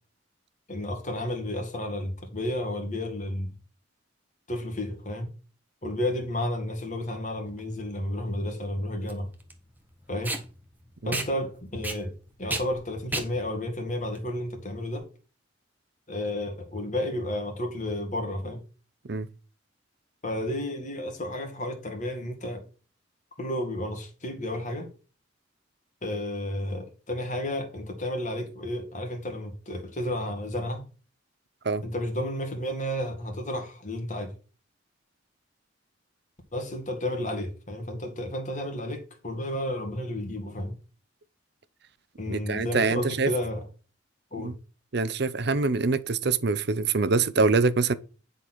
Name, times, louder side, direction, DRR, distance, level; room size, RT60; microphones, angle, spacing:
voice 1, 0.7-3.5 4.5-5.3 5.8-9.3 10.1-10.3 11.0-12.1 12.4-15.1 16.1-18.6 20.2-22.6 23.4-24.9 26.0-30.8 31.8-34.3 36.5-40.8 42.2-43.7 44.3-44.5, left 1 dB, 40° left, 1.9 m, -32 dB
Packing tape duct tape, 7.5-15.0, right 2 dB, 10° right, 1.2 m, -36 dB
voice 2, 42.3-43.3 44.4-44.5 44.9-48.0, right 4 dB, 55° right, 0.7 m, -25 dB
10.0 x 4.0 x 6.1 m
head